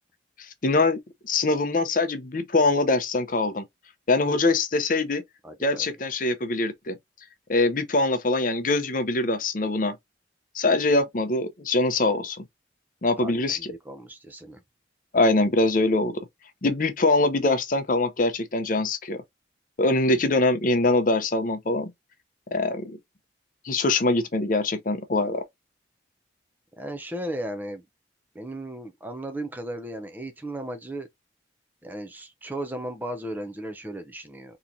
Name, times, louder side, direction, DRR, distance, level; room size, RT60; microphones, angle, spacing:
voice 1, 0.6-1.0 1.2-3.6 4.1-5.2 5.6-7.0 7.5-10.0 10.5-12.4 13.0-13.6 15.1-16.2 16.6-19.2 19.8-21.9 22.5-23.0 23.6-25.4, left 2 dB, 45° left, 0.6 m, -23 dB
voice 2, 5.4-5.9 13.2-14.6 26.8-27.8 28.3-31.1 31.8-34.6, right 1 dB, 10° right, 0.5 m, -36 dB
3.8 x 2.9 x 2.6 m
head